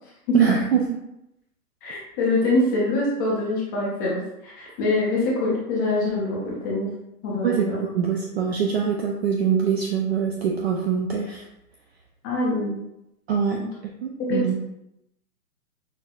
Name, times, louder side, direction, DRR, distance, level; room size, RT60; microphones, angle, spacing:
voice 1, 0.3-0.8 7.4-11.4 13.3-13.6 14.0-14.6, right 7 dB, 45° right, 0 dB, 0.5 m, -23 dB
voice 2, 1.8-6.9 7.2-7.8 12.2-12.8 14.3-14.4, left 2 dB, 15° left, -5 dB, 0.5 m, -24 dB
6.1 x 2.6 x 2.3 m, 0.85 s
hypercardioid pair, 135°, 45 cm